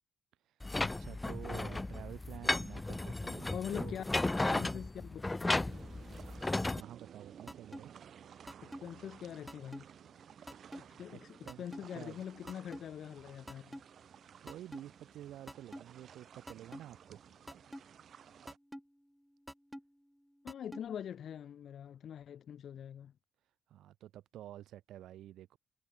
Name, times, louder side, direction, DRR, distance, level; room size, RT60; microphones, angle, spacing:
voice 1, 0.4-4.0 6.7-7.9 10.7-11.0 11.5-11.6 11.9-12.2 14.0-17.3 23.7-25.6, right 12 dB, 80° right, 7.9 m, -50 dB
sound 1, 0.6-6.8, left 2 dB, 15° left, 0.4 m, -35 dB
voice 2, 3.5-5.8 8.6-9.8 10.7-13.8 20.4-23.1, left 9 dB, 65° left, 1.6 m, -44 dB
sound 2, 5.7-18.6, right 8 dB, 60° right, 3.3 m, -56 dB
sound 3, 7.5-7.8 8.5-8.8 9.5-9.8 10.5-10.8 11.5-11.8 12.5-12.8 13.5-13.8 14.5-14.8 15.5-15.8 16.5-16.8 17.5-17.8 18.5-18.8 19.5-19.8 20.5-20.8, equal, ahead, 4.3 m, -45 dB
cardioid pair, 90°, 0 cm